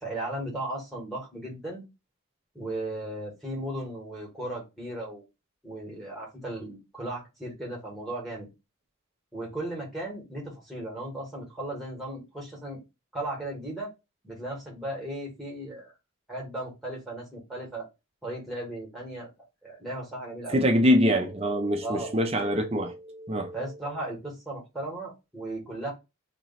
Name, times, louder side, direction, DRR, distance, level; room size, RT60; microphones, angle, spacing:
voice 1, 0.0-1.8 2.5-5.2 5.6-8.5 9.3-12.8 13.1-13.9 14.2-15.9 16.3-17.9 18.2-19.3 19.6-20.6 21.8-22.1 23.5-25.9, right 1 dB, ahead, 1.6 m, -36 dB
voice 2, 20.5-23.6, equal, 25° right, 0.5 m, -24 dB
3.0 x 2.9 x 4.0 m
head